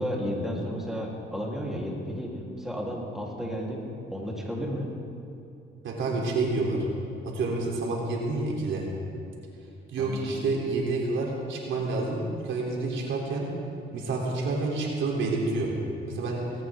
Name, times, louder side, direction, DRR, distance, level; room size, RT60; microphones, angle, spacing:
voice 1, 0.0-3.8 4.1-4.9 10.0-10.3, equal, ahead, -4 dB, 3.7 m, -32 dB
voice 2, 5.8-6.9 7.2-8.9 9.9-13.5 13.9-15.8 16.1-16.4, right 3 dB, 75° right, -2 dB, 3.6 m, -28 dB
20.0 x 17.0 x 3.8 m, 2.7 s
cardioid pair, 90°, 20 cm